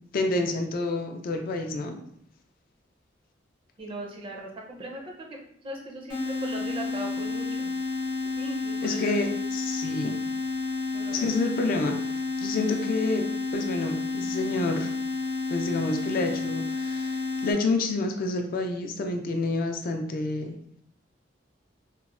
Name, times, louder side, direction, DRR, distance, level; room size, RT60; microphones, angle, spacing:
voice 1, 0.1-2.0 8.8-10.2 11.1-13.3 13.5-14.9 15.5-20.5, left 3 dB, 50° left, 5 dB, 0.3 m, -29 dB
voice 2, 3.8-5.0 5.6-7.7 8.4-9.1 9.9-10.0 10.9-11.2, right 1 dB, 30° right, 0 dB, 0.5 m, -38 dB
sound 1, 6.1-17.5, left 3 dB, 75° left, 0.8 m, -30 dB
3.0 x 2.0 x 2.4 m, 0.68 s
head